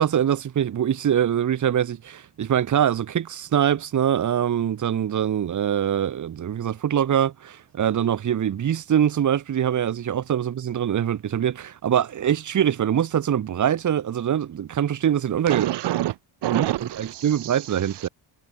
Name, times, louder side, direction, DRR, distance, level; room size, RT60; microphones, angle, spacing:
voice 1, 0.0-15.7 16.5-18.1, right 9 dB, 45° right, 3.1 m, -23 dB
voice 2, 15.5-18.1, right 14 dB, 75° right, 2.9 m, -28 dB
cardioid pair, 170°, 41 cm